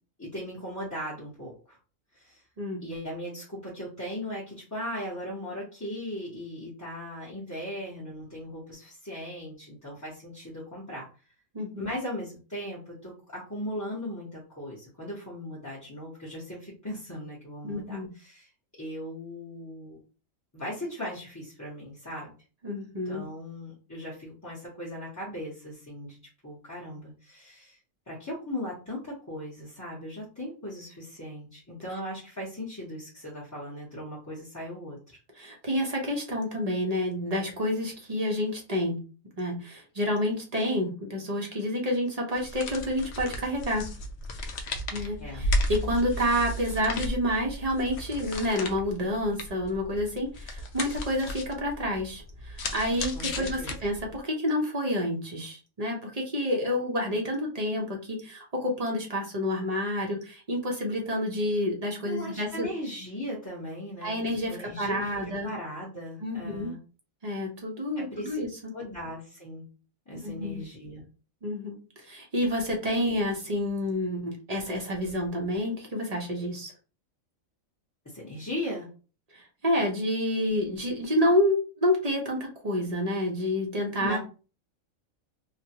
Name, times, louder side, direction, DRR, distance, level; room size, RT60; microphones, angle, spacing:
voice 1, 0.2-1.8 2.1-2.4 2.8-11.1 11.7-18.5 18.8-20.0 20.5-22.3 23.0-26.2 26.4-27.8 28.1-35.0 45.2-45.5 53.1-53.7 62.0-65.1 65.4-66.8 67.9-68.4 68.7-69.6 70.1-71.0 78.0-78.9 84.0-84.2, equal, 15° left, -7 dB, 0.7 m, -38 dB
voice 2, 11.5-11.9 17.6-18.1 22.6-23.3 35.4-39.0 39.4-43.9 44.9-62.7 64.0-65.5 66.2-66.7 67.2-68.7 70.2-70.6 71.4-76.7 79.3-84.2, left 1 dB, 40° right, 0 dB, 0.6 m, -29 dB
sound 1, 42.3-54.2, left 1 dB, 65° left, 0.7 m, -34 dB
3.2 x 2.2 x 2.8 m, 0.34 s
omnidirectional pair, 1.4 m